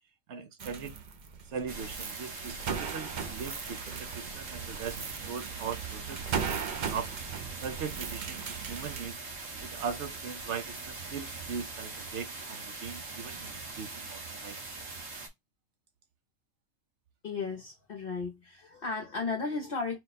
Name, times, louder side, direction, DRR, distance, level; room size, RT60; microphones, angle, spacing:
voice 1, 0.3-0.9 1.5-6.6 6.9-7.1 7.6-8.4 8.7-9.2 9.6-14.6, right 6 dB, 70° right, 1.0 m, -40 dB
sound 1, 0.6-9.1, right 6 dB, 50° right, 0.6 m, -38 dB
sound 2, 1.7-15.3, right 3 dB, 85° right, 1.7 m, -42 dB
voice 2, 17.2-20.0, left 4 dB, 55° left, 0.8 m, -35 dB
4.2 x 2.2 x 4.0 m
omnidirectional pair, 1.3 m